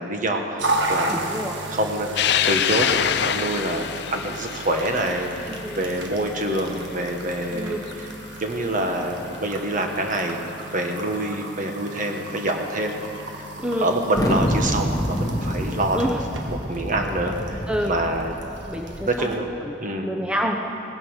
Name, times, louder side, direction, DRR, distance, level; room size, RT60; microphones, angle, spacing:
voice 1, 0.0-1.2 1.7-2.1 2.5-8.1 8.4-10.4 10.7-13.0 13.3-13.4 13.8-17.6 17.9-18.4 19.0-19.5 19.8-20.1, right 1 dB, 45° right, 3 dB, 1.4 m, -26 dB
sound 1, 0.6-19.4, right 2 dB, 85° right, 1.4 m, -34 dB
voice 2, 1.1-1.5 5.5-5.8 7.5-7.8 13.6-13.9 15.9-16.2 17.7-17.9 18.7-19.1 20.0-20.6, equal, 5° right, 1 dB, 0.8 m, -27 dB
sound 2, 2.2-8.8 9.3-9.4 10.6-10.7 12.9-13.0 14.4-14.6, left 9 dB, 65° left, 0.5 m, -27 dB
Thunder, 14.2-19.3, equal, 20° left, 1.2 m, -27 dB
18.0 x 10.0 x 6.4 m, 3.0 s
head